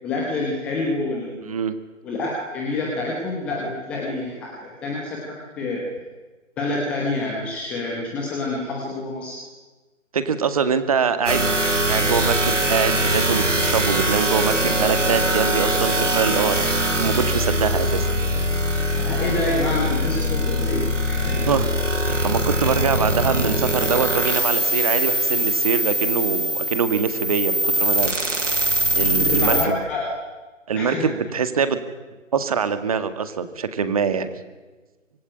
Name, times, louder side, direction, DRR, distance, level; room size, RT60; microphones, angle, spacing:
voice 1, 0.0-1.6 2.0-5.9 6.6-9.4 18.9-21.4 29.2-30.1 30.7-31.1, left 2 dB, 5° left, -1 dB, 0.9 m, -27 dB
voice 2, 1.4-1.7 10.1-11.6 11.9-18.1 21.4-21.7 22.0-28.1 28.9-29.8 30.7-31.8 32.3-34.3, right 6 dB, 30° right, 11 dB, 2.0 m, -24 dB
sound 1, 11.3-29.7, right 1 dB, 70° right, 4.8 m, -22 dB
25.5 x 22.5 x 10.0 m, 1.3 s
figure-of-eight pair, 150°, 38 cm